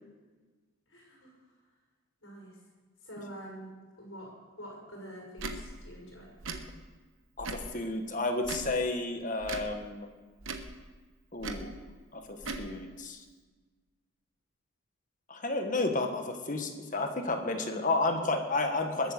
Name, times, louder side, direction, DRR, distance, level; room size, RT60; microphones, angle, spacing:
voice 1, 0.9-1.3 2.2-2.5 3.0-3.7 4.0-6.3, equal, 55° left, -3 dB, 6.3 m, -46 dB
Tick / Tick-tock, 5.4-5.6 6.4-6.6 7.4-7.7 8.4-8.7 9.4-9.7 10.4-10.7 11.4-11.7 12.4-12.7, right 3 dB, 60° right, 1.1 m, -38 dB
voice 2, 7.4-10.1 11.3-11.8 12.1-12.2 12.6-13.2 15.3-19.1, left 2 dB, 35° left, 5 dB, 1.3 m, -31 dB
21.0 x 8.3 x 6.7 m, 1.4 s
head